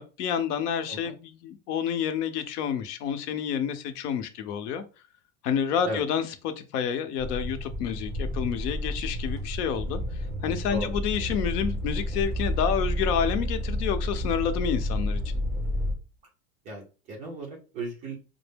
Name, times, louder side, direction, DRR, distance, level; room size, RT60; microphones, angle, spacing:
voice 1, 0.0-4.8 5.4-10.0 10.4-15.2, left 8 dB, 90° left, 0.8 m, -29 dB
sound 1, 7.2-15.9, left 1 dB, 5° left, 1.4 m, -30 dB
voice 2, 16.6-18.2, right 1 dB, 20° right, 0.3 m, -36 dB
5.1 x 2.0 x 3.4 m
supercardioid pair, 160°, 45 cm